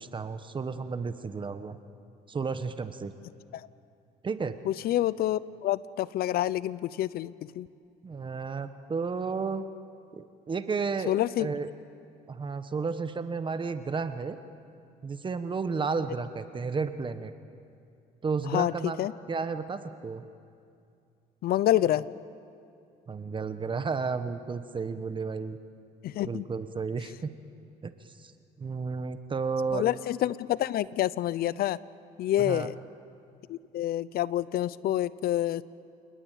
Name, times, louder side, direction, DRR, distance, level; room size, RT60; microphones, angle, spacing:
voice 1, 0.0-1.8 2.3-3.1 4.2-4.6 8.0-9.6 10.1-11.7 12.3-14.4 15.0-17.3 18.2-19.0 19.3-20.2 23.1-25.6 26.2-27.3 27.8-27.9 28.2-28.3 28.6-29.9 32.4-32.7, right 5 dB, 30° right, 10 dB, 1.3 m, -32 dB
voice 2, 4.6-7.7 11.1-11.5 18.4-19.1 21.4-22.1 26.0-26.5 29.7-31.8 32.2-32.8 33.5-35.6, left 13 dB, 65° left, 19 dB, 0.7 m, -28 dB
28.5 x 19.5 x 9.2 m, 2.4 s
cardioid pair, 110°, 17 cm